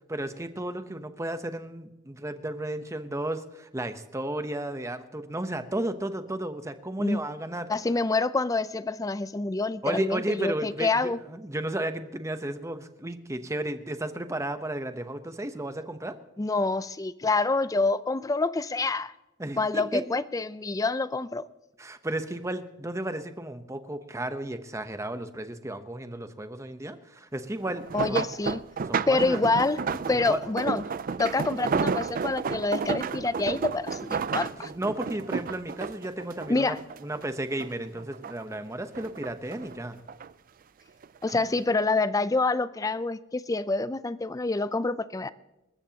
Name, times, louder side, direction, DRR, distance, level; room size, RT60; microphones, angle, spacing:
voice 1, 0.1-7.7 9.8-16.2 19.4-20.0 21.8-28.2 28.9-29.4 30.1-30.4 34.6-36.8 37.0-40.0, right 1 dB, 15° right, 9 dB, 0.8 m, -33 dB
voice 2, 7.7-11.2 16.4-19.1 19.6-21.4 27.9-28.6 29.1-29.8 30.1-30.8 31.2-34.7 36.5-36.8 41.2-45.3, left 3 dB, 15° left, 15 dB, 0.4 m, -27 dB
sound 1, 27.7-37.3 37.6-38.6 38.9-40.3 41.0-41.3 41.7-41.8, right 5 dB, 45° right, 0.4 m, -32 dB
27.0 x 14.0 x 2.8 m, 0.98 s
head